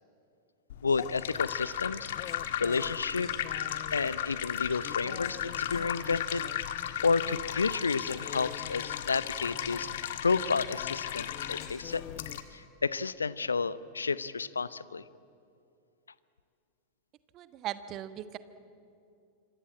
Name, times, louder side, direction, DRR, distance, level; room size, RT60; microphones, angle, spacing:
sound 1, 0.7-12.4, left 11 dB, 55° left, 1.7 m, -36 dB
voice 1, 0.8-3.3 3.9-6.5 7.0-9.9 10.2-12.0 12.5-15.1, left 4 dB, 75° left, 18 dB, 0.8 m, -31 dB
sound 2, 0.9-12.4, left 13 dB, 35° left, 0.8 m, -48 dB
voice 2, 17.3-18.4, right 12 dB, 35° right, 12 dB, 1.3 m, -38 dB
26.5 x 25.5 x 8.8 m, 2.5 s
figure-of-eight pair, 90°, 0 cm